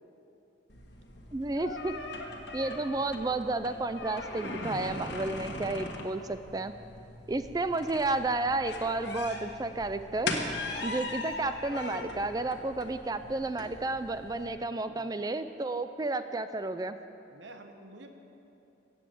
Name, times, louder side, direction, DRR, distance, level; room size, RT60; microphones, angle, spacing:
sound 1, 0.7-14.5, left 2 dB, 55° left, 1.5 m, -40 dB
voice 1, 1.3-1.9 2.5-6.7 7.3-10.3 10.8-17.0, right 2 dB, 20° right, 11 dB, 0.3 m, -32 dB
voice 2, 14.9-15.3 17.3-18.1, right 2 dB, 70° right, 6 dB, 1.1 m, -50 dB
14.5 x 9.2 x 7.6 m, 2.9 s
head